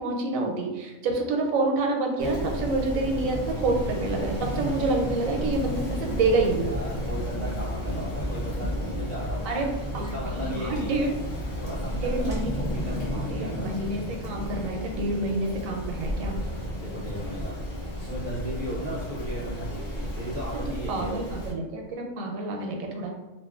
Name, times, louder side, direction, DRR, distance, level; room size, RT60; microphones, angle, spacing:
voice 1, 0.0-6.7 9.4-11.2 12.0-16.4 20.9-23.1, right 2 dB, 85° right, 1 dB, 1.0 m, -28 dB
Rain, 2.2-21.5, equal, 60° left, 0.9 m, -32 dB
voice 2, 6.6-9.6 9.9-11.0 11.6-13.7 16.6-17.6 18.0-21.1, equal, 55° right, -6 dB, 0.7 m, -36 dB
2.7 x 2.4 x 2.4 m, 1.1 s
omnidirectional pair, 1.4 m